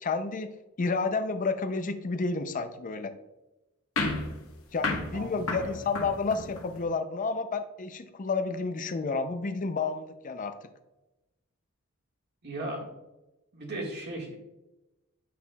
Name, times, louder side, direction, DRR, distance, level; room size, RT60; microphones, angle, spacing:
voice 1, 0.0-0.5 0.8-3.1 4.7-10.6, left 4 dB, 40° left, 9 dB, 0.5 m, -30 dB
sound 1, 4.0-6.8, left 3 dB, 75° left, 1.0 m, -33 dB
voice 2, 5.1-5.8 12.4-12.9 13.5-14.4, right 1 dB, 50° right, -1 dB, 1.7 m, -37 dB
8.4 x 5.6 x 2.3 m, 0.99 s
head